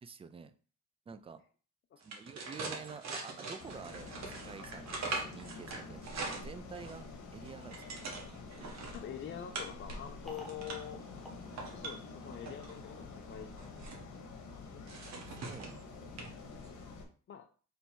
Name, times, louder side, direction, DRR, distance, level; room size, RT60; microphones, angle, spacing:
voice 1, 0.0-0.5 1.1-1.4 2.0-7.8 15.3-16.0, right 5 dB, 20° right, 10 dB, 0.3 m, -49 dB
sound 1, 2.0-7.0 7.4-9.0 9.5-10.0 10.3-10.9 11.4-12.7 13.4-14.0 14.9-15.8 16.2-16.3 16.6-16.8, right 3 dB, 65° right, 1.2 m, -42 dB
sound 2, 3.6-17.0, left 3 dB, 75° left, 1.1 m, -48 dB
sound 3, 4.6-12.3, right 2 dB, ahead, 0.8 m, -59 dB
voice 2, 8.9-11.0 11.7-13.7 14.4-14.9 17.3-17.5, left 9 dB, 40° left, 4 dB, 0.5 m, -45 dB
3.3 x 2.8 x 4.3 m, 0.41 s
cardioid pair, 90°, 30 cm